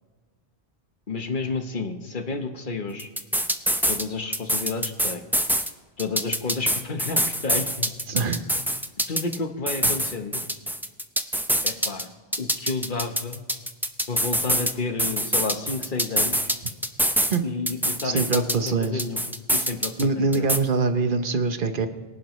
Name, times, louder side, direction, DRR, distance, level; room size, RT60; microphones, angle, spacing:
voice 1, 1.1-3.1 3.9-5.2 6.0-7.9 9.1-10.4 11.6-12.1 12.4-13.4 14.1-16.5 17.4-19.2 19.5-20.5, left 3 dB, 55° left, 6 dB, 1.2 m, -31 dB
sound 1, 3.0-4.0 4.3-5.7 6.0-9.4 9.7-12.0 12.3-14.7 15.0-17.4 17.7-20.0 20.3-20.6, equal, 5° right, 0.5 m, -24 dB
voice 2, 8.1-8.4 17.3-17.4 18.0-19.0 20.0-21.9, right 4 dB, 60° right, 8 dB, 1.0 m, -24 dB
23.5 x 11.0 x 3.1 m, 1.4 s
omnidirectional pair, 1.0 m